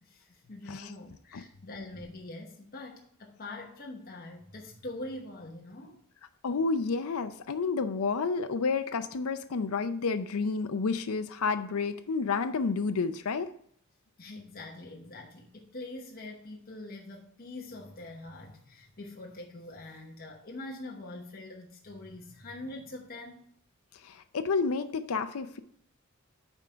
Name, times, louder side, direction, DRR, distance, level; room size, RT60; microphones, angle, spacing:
voice 1, 0.0-6.0 14.2-23.5, left 2 dB, 45° left, -1 dB, 1.1 m, -44 dB
voice 2, 6.4-13.5 24.0-25.6, left 4 dB, 75° left, 9 dB, 0.5 m, -30 dB
8.9 x 3.7 x 5.6 m, 0.64 s
head